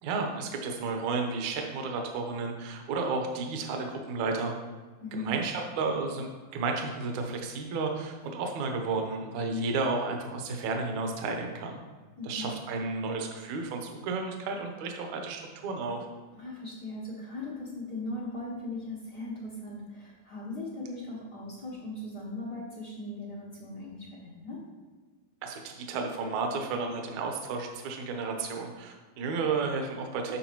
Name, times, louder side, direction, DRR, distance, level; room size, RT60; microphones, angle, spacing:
voice 1, 0.0-4.5 5.2-11.8 12.2-16.0 25.4-30.4, right 4 dB, 70° right, 2 dB, 1.9 m, -32 dB
voice 2, 5.0-5.3 9.5-9.7 12.2-12.5 16.3-24.6, left 2 dB, 80° left, -7 dB, 0.9 m, -39 dB
11.5 x 6.2 x 3.0 m, 1.4 s
omnidirectional pair, 4.4 m